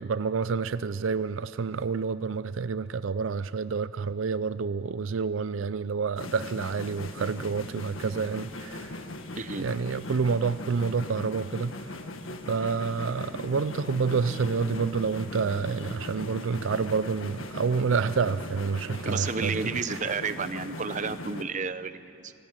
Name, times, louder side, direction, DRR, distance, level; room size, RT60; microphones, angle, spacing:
voice 1, 0.0-9.0 9.6-11.7 12.5-19.7, right 5 dB, 75° right, 14 dB, 0.5 m, -28 dB
sound 1, 6.2-21.4, left 2 dB, 85° left, 1.7 m, -39 dB
voice 2, 9.3-9.6 19.0-22.3, right 5 dB, 40° right, 12 dB, 0.8 m, -31 dB
sound 2, 12.8-16.8, equal, 40° left, 7.4 m, -60 dB
28.0 x 17.5 x 8.9 m, 2.8 s
head